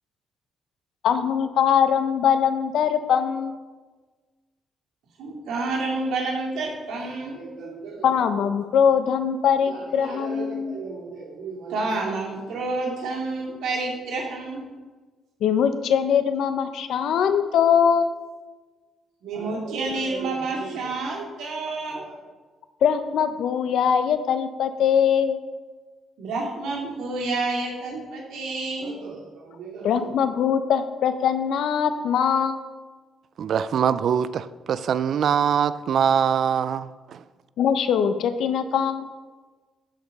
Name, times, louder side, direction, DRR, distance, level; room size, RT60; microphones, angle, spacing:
voice 1, 1.0-3.6 8.0-10.8 15.4-18.1 22.8-25.4 29.8-32.6 37.6-39.1, left 8 dB, 75° left, 10 dB, 0.8 m, -22 dB
voice 2, 5.2-8.1 9.7-14.7 19.2-22.2 26.2-30.1, right 3 dB, 80° right, -2 dB, 2.5 m, -30 dB
voice 3, 33.4-37.2, right 8 dB, 60° right, 15 dB, 0.4 m, -23 dB
13.0 x 5.1 x 5.3 m, 1.3 s
cardioid pair, 90°, 0 cm